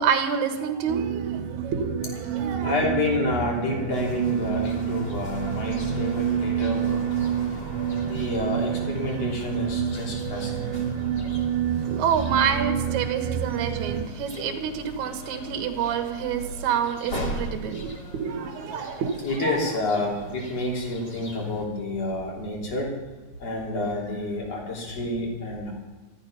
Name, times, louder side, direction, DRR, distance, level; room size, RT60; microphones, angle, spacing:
voice 1, 0.0-2.7 11.9-19.6, right 7 dB, 60° right, 5 dB, 2.5 m, -28 dB
sound 1, 0.9-14.1, right 9 dB, 90° right, 2.6 m, -28 dB
sound 2, 2.0-20.4, left 1 dB, 75° left, 6.6 m, -48 dB
voice 2, 2.6-7.1 8.0-10.9 18.9-23.0 23.4-25.7, left 2 dB, 45° left, -2 dB, 4.2 m, -29 dB
sound 3, 3.9-21.6, equal, 30° left, 2.9 m, -39 dB
15.0 x 13.5 x 5.7 m, 1.3 s
omnidirectional pair, 4.1 m